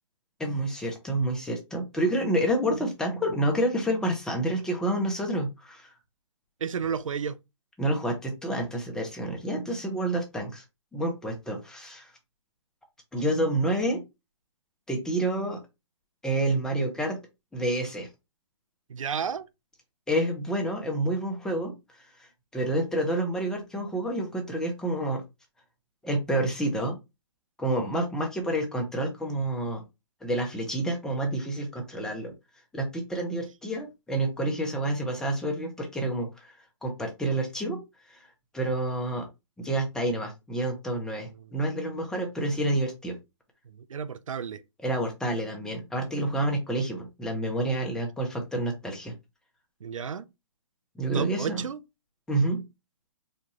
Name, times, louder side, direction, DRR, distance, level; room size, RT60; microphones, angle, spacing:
voice 1, 0.4-5.9 7.8-10.6 10.9-12.1 13.1-14.0 14.9-15.6 16.2-17.2 17.5-18.1 20.1-21.7 22.2-25.2 26.0-27.0 27.6-29.8 30.2-32.3 32.7-36.5 36.8-37.8 38.1-38.2 38.5-39.3 39.6-43.1 44.8-49.1 51.0-51.6 52.3-52.6, right 1 dB, 5° left, 0.8 m, -28 dB
voice 2, 6.6-7.4 18.9-19.5 41.4-41.5 43.7-44.6 49.8-50.2 51.1-51.8, right 7 dB, 90° right, 0.5 m, -32 dB
4.2 x 2.5 x 3.0 m
hypercardioid pair, 150°, 16 cm